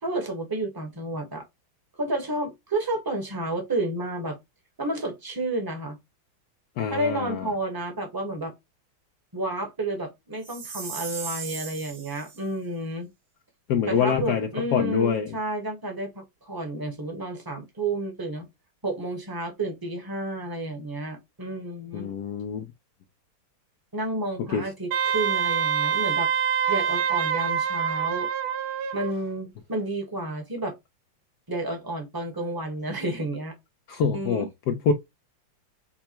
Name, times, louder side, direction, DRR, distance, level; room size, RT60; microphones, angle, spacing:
voice 1, 0.0-1.4 1.9-4.4 4.8-6.0 6.9-8.5 9.3-13.1 13.9-18.5 18.8-22.1 23.9-26.3 26.7-28.3 28.9-30.8 31.5-33.6 34.1-34.5, right 2 dB, 15° right, 0.8 m, -31 dB
voice 2, 6.8-7.5 13.7-15.4 21.9-22.7 24.5-24.6 33.9-34.9, left 6 dB, 70° left, 1.0 m, -25 dB
Chime, 10.4-12.4, right 6 dB, 60° right, 2.0 m, -37 dB
Wind instrument woodwind instrument, 24.9-29.1, right 7 dB, 80° right, 1.6 m, -25 dB
5.6 x 2.2 x 4.4 m
omnidirectional pair, 2.3 m